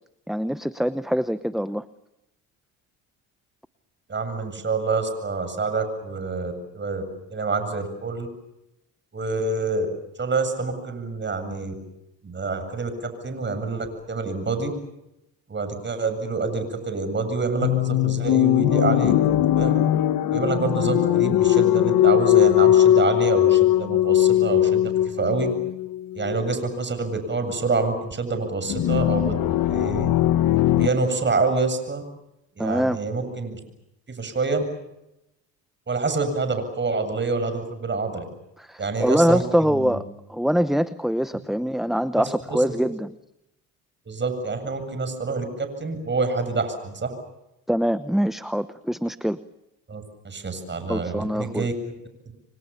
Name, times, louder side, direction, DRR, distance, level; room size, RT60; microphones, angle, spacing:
voice 1, 0.3-1.8 32.6-33.0 38.6-43.1 47.7-49.4 50.9-51.7, equal, ahead, 13 dB, 0.9 m, -24 dB
voice 2, 4.1-7.0 7.3-8.3 9.1-9.9 10.2-11.7 12.2-14.7 15.5-19.8 20.3-25.5 26.1-30.1 30.7-32.0 32.6-33.6 34.1-34.6 35.9-38.2 38.8-40.0 42.2-42.6 44.1-47.1 49.9-51.7 52.3-52.4, right 3 dB, 30° right, 9 dB, 7.8 m, -27 dB
sound 1, 17.6-26.7 28.7-30.9, left 12 dB, 60° left, 1.3 m, -20 dB
30.0 x 24.5 x 7.1 m, 0.88 s
supercardioid pair, 85°, 38 cm